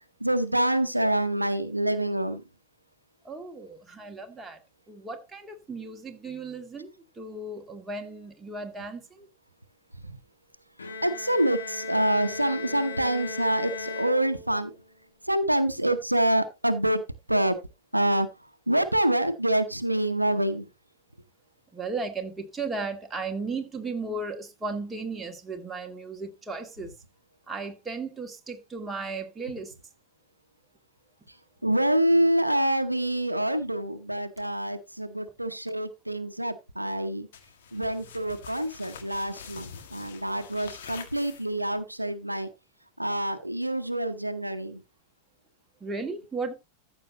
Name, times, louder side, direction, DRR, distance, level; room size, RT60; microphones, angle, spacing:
voice 1, 0.2-2.4 10.1-10.2 11.0-14.7 15.3-17.0 17.3-17.6 17.9-18.3 18.7-20.6 31.6-37.3 37.7-42.5 43.0-44.8, right 1 dB, 85° right, 0.8 m, -26 dB
voice 2, 3.2-4.6 4.9-9.3 21.7-27.0 27.5-29.7 45.8-46.5, right 3 dB, 10° right, 1.9 m, -35 dB
Bowed string instrument, 10.8-14.8, left 3 dB, 75° left, 1.8 m, -37 dB
sound 1, 37.3-41.8, left 7 dB, 60° left, 1.8 m, -46 dB
14.0 x 7.1 x 2.9 m
figure-of-eight pair, 90°, 0 cm